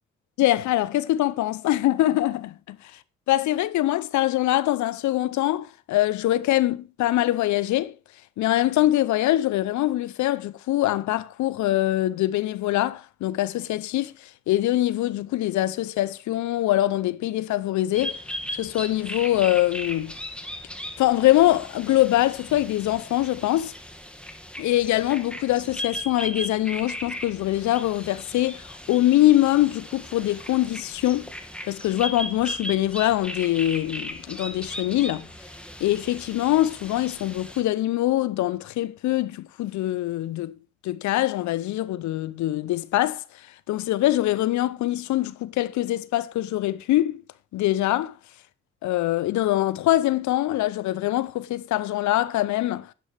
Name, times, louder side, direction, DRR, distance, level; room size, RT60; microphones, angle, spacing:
voice 1, 0.4-3.0 3.3-8.0 8.4-18.2 18.5-20.1 21.0-23.7 24.6-31.3 31.7-35.3 35.8-40.6 40.8-47.2 47.5-48.2 48.8-52.9, left 15 dB, 70° left, 0.7 m, -23 dB
sound 1, 17.9-37.6, left 1 dB, 5° left, 2.1 m, -37 dB
10.5 x 10.0 x 3.4 m
hypercardioid pair, 45°, 30 cm